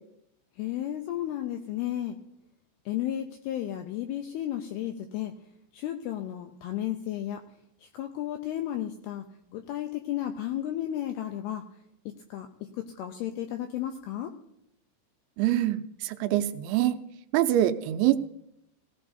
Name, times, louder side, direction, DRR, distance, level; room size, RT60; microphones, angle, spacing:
voice 1, 0.6-2.2 2.9-5.3 5.7-7.4 7.8-9.2 9.5-11.6 12.3-12.5 12.8-14.3, left 12 dB, 85° left, 6 dB, 2.3 m, -33 dB
voice 2, 15.4-17.0 17.3-18.2, right 13 dB, 85° right, 9 dB, 2.9 m, -25 dB
16.5 x 16.5 x 2.7 m, 0.79 s
omnidirectional pair, 5.2 m